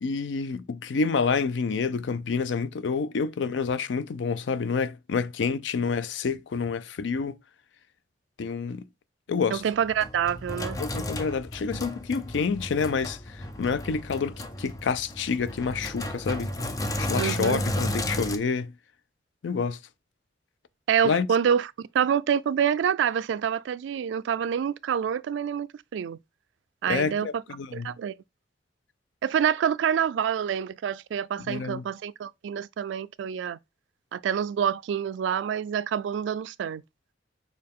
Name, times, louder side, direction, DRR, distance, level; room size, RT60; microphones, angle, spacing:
voice 1, 0.0-7.4 8.4-8.8 9.3-9.6 10.8-16.5 17.0-18.7 19.4-19.8 21.0-21.3 26.9-27.9 31.5-31.8, left 5 dB, 80° left, 0.4 m, -28 dB
Sink (filling or washing), 9.5-18.4, left 1 dB, 20° left, 0.5 m, -33 dB
voice 2, 9.5-10.8 17.1-17.6 20.9-25.7 25.9-26.2 26.8-27.4 27.7-28.1 29.2-33.6 34.1-36.8, right 8 dB, 85° right, 0.3 m, -27 dB
6.5 x 2.3 x 3.5 m
head